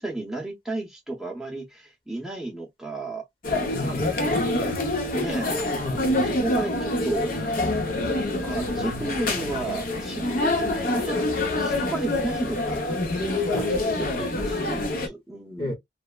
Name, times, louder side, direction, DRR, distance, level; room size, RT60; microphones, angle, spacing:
voice 1, 0.0-3.2 5.1-5.5 6.2-7.7 8.4-15.7, right 2 dB, 5° right, 0.7 m, -33 dB
sound 1, 3.4-15.1, left 2 dB, 45° left, 0.6 m, -26 dB
voice 2, 3.7-4.6 5.7-6.1 13.4-14.0 14.3-14.5 15.6-15.7, left 1 dB, 30° left, 0.9 m, -33 dB
3.1 x 2.1 x 2.2 m
head